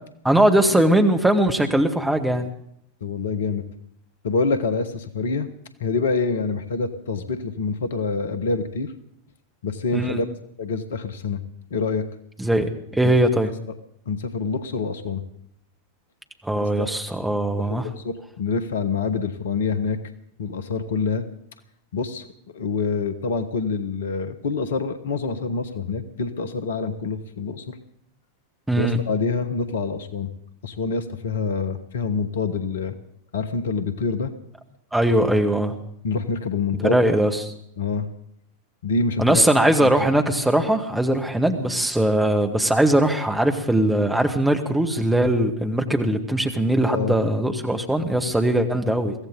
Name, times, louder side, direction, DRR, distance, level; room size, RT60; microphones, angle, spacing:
voice 1, 0.2-2.5 9.9-10.2 12.4-13.5 16.4-17.8 28.7-29.0 34.9-35.7 36.8-37.5 39.2-49.1, right 1 dB, 5° right, 4 dB, 1.7 m, -20 dB
voice 2, 3.0-3.6 4.2-5.5 5.8-8.9 9.6-10.2 10.6-11.4 11.7-12.1 13.0-13.1 14.1-15.2 16.5-16.9 17.5-20.0 20.4-21.2 21.9-22.2 22.5-27.8 28.8-30.3 30.6-33.0 33.3-34.3 36.0-37.0 37.8-38.1 38.8-39.4 39.8-39.9 46.8-47.2, left 4 dB, 60° left, 11 dB, 1.3 m, -26 dB
23.0 x 16.0 x 4.0 m, 0.71 s
figure-of-eight pair, 90°, 0 cm